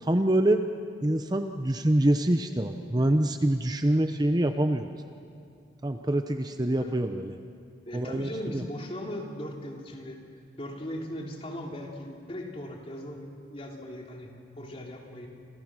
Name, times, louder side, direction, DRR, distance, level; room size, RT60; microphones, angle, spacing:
voice 1, 0.0-0.6 1.0-4.9 5.8-7.4 7.9-8.6, right 1 dB, 20° right, 7 dB, 0.8 m, -25 dB
voice 2, 7.8-10.2 10.6-15.3, left 1 dB, 30° left, 0 dB, 3.1 m, -38 dB
28.5 x 27.0 x 6.2 m, 2.3 s
head